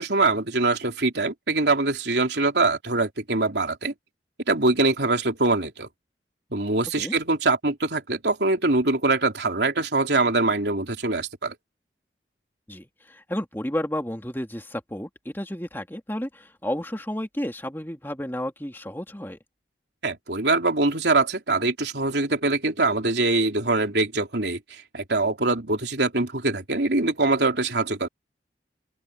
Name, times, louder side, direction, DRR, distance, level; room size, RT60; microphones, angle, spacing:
voice 1, 0.0-3.9 4.5-5.9 6.5-11.5 20.0-28.1, right 3 dB, 75° right, 3.3 m, -23 dB
voice 2, 12.7-19.4, left 1 dB, 10° left, 2.6 m, -32 dB
open air
head